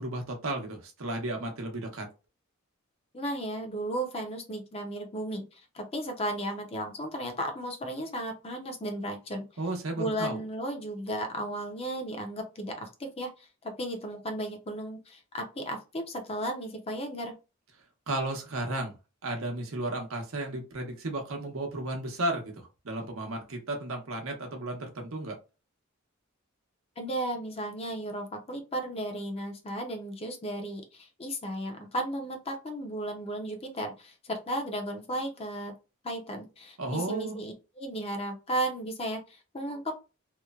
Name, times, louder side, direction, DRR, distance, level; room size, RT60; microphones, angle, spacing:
voice 1, 0.0-2.1 9.6-10.4 18.1-18.9 19.2-25.3 36.8-37.4, right 2 dB, 85° right, 3 dB, 0.8 m, -33 dB
voice 2, 3.1-9.4 10.0-17.3 27.0-35.7 36.0-39.9, right 1 dB, 30° left, 4 dB, 0.6 m, -35 dB
2.9 x 2.1 x 2.3 m, 0.30 s
head